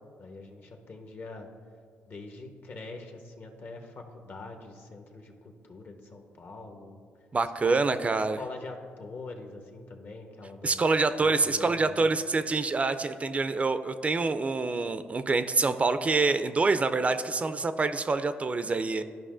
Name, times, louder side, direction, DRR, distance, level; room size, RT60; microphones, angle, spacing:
voice 1, 0.2-1.5 2.1-7.1 7.6-8.0 8.3-10.9 11.2-12.1, left 3 dB, 55° left, 4 dB, 0.9 m, -44 dB
voice 2, 7.3-8.4 10.6-19.0, right 3 dB, 30° right, 11 dB, 0.3 m, -26 dB
12.0 x 5.3 x 2.5 m, 2.2 s
cardioid pair, 70°, 4 cm